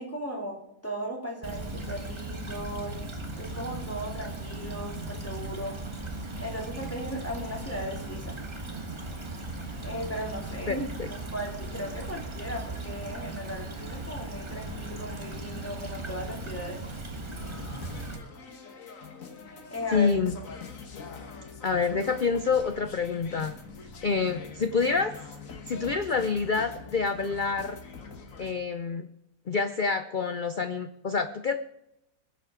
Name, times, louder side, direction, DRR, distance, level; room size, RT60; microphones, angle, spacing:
voice 1, 0.0-3.1 3.3-5.8 6.4-8.3 9.8-16.8 19.7-20.1, equal, 10° left, -1 dB, 2.7 m, -37 dB
Stream / Trickle dribble, 1.4-18.2, right 2 dB, 20° right, 1.3 m, -37 dB
voice 2, 10.7-11.1 19.9-20.3 21.6-23.5 24.0-25.1 25.7-27.8 28.4-29.1 29.5-31.6, left 5 dB, 75° left, 10 dB, 0.4 m, -27 dB
sound 1, 17.4-28.5, left 5 dB, 55° left, 1.8 m, -44 dB
20.5 x 7.6 x 4.9 m, 0.84 s
omnidirectional pair, 1.7 m